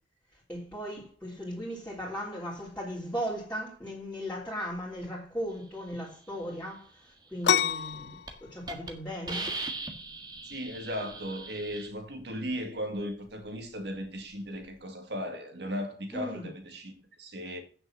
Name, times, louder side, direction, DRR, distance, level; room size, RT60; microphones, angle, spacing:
voice 1, 0.5-9.5 16.1-16.5, equal, 5° left, 3.2 m, -37 dB
sound 1, 7.4-14.8, left 8 dB, 65° left, 0.4 m, -34 dB
Hiss, 7.7-7.9 8.3-8.4 8.7-8.9 9.3-11.9, right 2 dB, 25° right, 1.6 m, -38 dB
voice 2, 10.4-16.9 17.2-17.6, equal, 65° right, 2.2 m, -36 dB
9.2 x 6.9 x 5.9 m
head